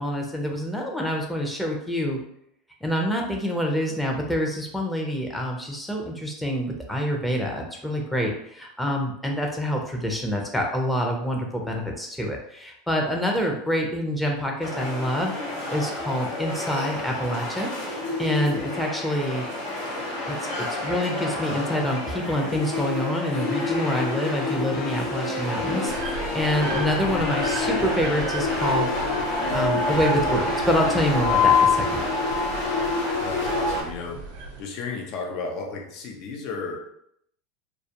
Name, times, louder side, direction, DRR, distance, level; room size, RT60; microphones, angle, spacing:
voice 1, 0.0-2.2 2.8-15.3 15.7-19.4 20.3-28.9 29.5-32.0, equal, 5° left, 0 dB, 0.6 m, -27 dB
sound 1, 14.6-33.8, left 3 dB, 80° left, 0.8 m, -27 dB
sound 2, 23.2-31.4, left 5 dB, 40° left, 0.8 m, -36 dB
sound 3, 25.9-34.6, right 3 dB, 80° right, 0.6 m, -37 dB
voice 2, 33.2-34.3 34.6-36.8, left 4 dB, 55° left, 2 dB, 0.5 m, -33 dB
2.3 x 2.1 x 2.9 m, 0.73 s
hypercardioid pair, 105°, 0 cm